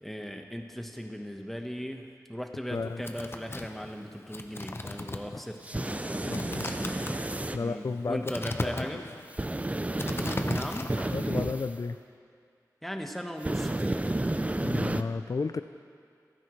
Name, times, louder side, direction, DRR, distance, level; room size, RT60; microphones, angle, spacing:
voice 1, 0.0-7.0 7.6-9.0 10.5-10.9 12.8-14.4, equal, 5° left, 3 dB, 1.2 m, -38 dB
voice 2, 2.7-3.0 5.7-5.8 6.2-6.7 7.5-8.3 8.6-9.0 11.1-12.0 14.6-15.6, left 4 dB, 55° left, 9 dB, 0.4 m, -33 dB
sound 1, 2.7-11.2, left 2 dB, 35° left, 0.8 m, -37 dB
sound 2, 5.6-7.6 9.3-11.7 13.4-15.0, right 1 dB, 20° right, 0.5 m, -31 dB
27.0 x 10.0 x 3.2 m, 2.3 s
wide cardioid pair, 75°, 7 cm